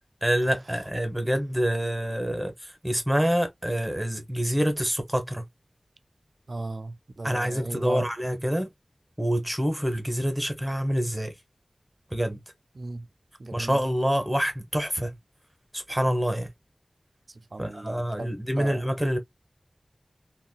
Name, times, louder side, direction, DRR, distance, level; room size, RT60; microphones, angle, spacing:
voice 1, 0.2-5.4 7.2-8.7 9.2-11.3 12.1-12.4 13.5-15.2 15.7-16.5 17.6-19.2, equal, 10° right, 1.0 m, -26 dB
voice 2, 6.5-8.1 12.8-13.1 13.4-13.8 17.3-18.3 18.6-18.9, right 2 dB, 65° right, 0.4 m, -35 dB
3.6 x 2.3 x 2.2 m
wide cardioid pair, 55°, 0 cm